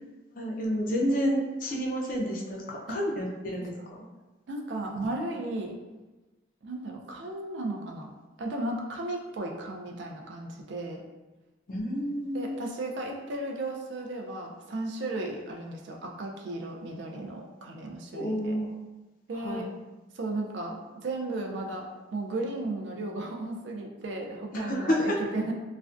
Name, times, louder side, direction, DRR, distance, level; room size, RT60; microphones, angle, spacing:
voice 1, 0.3-4.0 4.8-4.9 11.7-12.6 18.1-18.7 19.3-19.6 24.5-25.2, equal, 45° left, -1 dB, 0.4 m, -30 dB
voice 2, 4.5-5.7 6.6-8.1 8.4-11.0 12.3-18.6 19.3-19.7 20.1-25.5, right 2 dB, 65° right, 1 dB, 0.4 m, -35 dB
2.4 x 2.1 x 2.3 m, 1.1 s
head